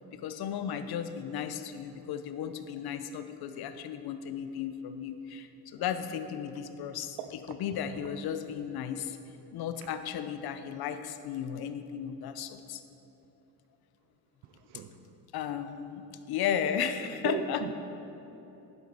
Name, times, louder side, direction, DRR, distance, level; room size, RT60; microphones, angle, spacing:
voice 1, 0.1-7.2 7.5-9.2 9.5-12.8 15.3-17.7, left 8 dB, 65° left, 10 dB, 0.8 m, -35 dB
voice 2, 7.2-7.6 14.4-15.0 17.2-17.7, right 10 dB, 85° right, 10 dB, 0.7 m, -38 dB
11.5 x 8.2 x 4.5 m, 3.0 s
supercardioid pair, 80°, 40 cm